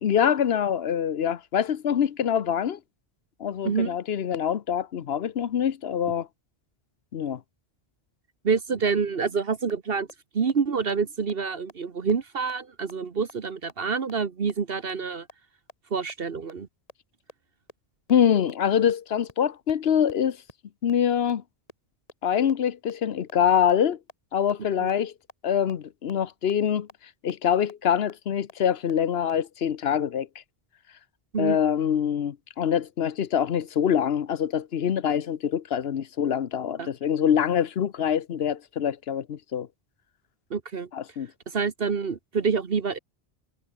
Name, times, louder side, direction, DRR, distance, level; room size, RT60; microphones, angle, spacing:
voice 1, 0.0-2.8 3.4-6.3 7.1-7.4 18.1-20.4 20.8-21.4 22.2-24.0 24.3-25.1 25.4-26.9 27.2-30.3 31.4-39.7 40.9-41.3, left 8 dB, 70° left, 1.1 m, -25 dB
voice 2, 3.6-4.0 8.4-10.1 10.3-15.3 15.9-16.7 24.8-24.9 31.3-31.6 36.8-36.9 40.5-40.9 41.5-43.0, right 5 dB, 60° right, 1.4 m, -27 dB
sound 1, 9.7-9.8 10.1-10.2 10.5-10.6 10.9-11.0 11.3-11.4 11.7-11.8 12.1-12.2 12.5-12.6 12.9-13.0 13.3-13.4 13.7-13.8 14.1-14.2 14.5-14.6 14.9-15.0 15.3-15.4 15.7-15.8 16.1-16.2 16.5-16.6 16.9-17.0 17.3-17.4 17.7-17.8 18.1-18.2 18.5-18.6 18.9-19.0 19.3-19.4 19.7-19.8 20.1-20.2 20.5-20.6 20.9-21.0 21.3-21.4 21.7-21.8 22.1-22.2 22.5-22.6 22.9-23.0 23.3-23.4 23.7-23.8 24.1-24.2 24.5-24.6 24.9-25.0 25.3-25.4 25.7-25.8 26.1-26.2 26.5-26.6 26.9-27.0 27.3-27.4 27.7-27.8 28.1-28.2 28.5-28.6 28.9-29.0 29.3-29.4, left 2 dB, 35° left, 2.2 m, -45 dB
omnidirectional pair, 1.1 m